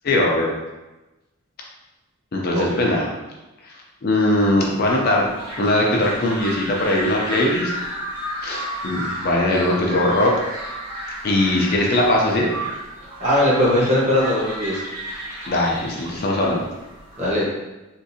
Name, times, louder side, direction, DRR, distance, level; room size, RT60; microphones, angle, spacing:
voice 1, 0.0-0.5 2.3-3.1 4.0-5.3 5.6-7.7 8.4-10.3 11.2-12.5 15.5-16.6, left 1 dB, 45° left, -2 dB, 0.5 m, -20 dB
sound 1, 4.5-17.3, right 1 dB, 85° right, 1.4 m, -33 dB
voice 2, 13.2-14.8 17.2-17.4, left 1 dB, 30° right, -7 dB, 1.1 m, -19 dB
3.6 x 2.5 x 2.7 m, 1.1 s
head